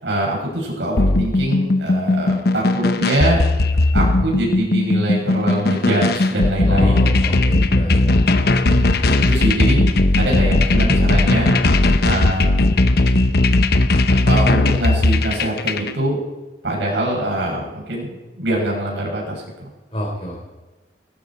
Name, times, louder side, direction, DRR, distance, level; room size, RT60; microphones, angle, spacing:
voice 1, 0.0-3.4 3.9-7.1 8.6-9.8 10.1-11.5 12.0-12.7 14.3-16.2 16.6-19.4, right 1 dB, 90° right, -3 dB, 7.1 m, -23 dB
sound 1, 1.0-15.9, left 2 dB, 60° left, 0.9 m, -17 dB
voice 2, 6.7-8.3 19.9-20.4, left 1 dB, 35° left, -2 dB, 3.6 m, -28 dB
19.5 x 14.5 x 4.5 m, 1.2 s
head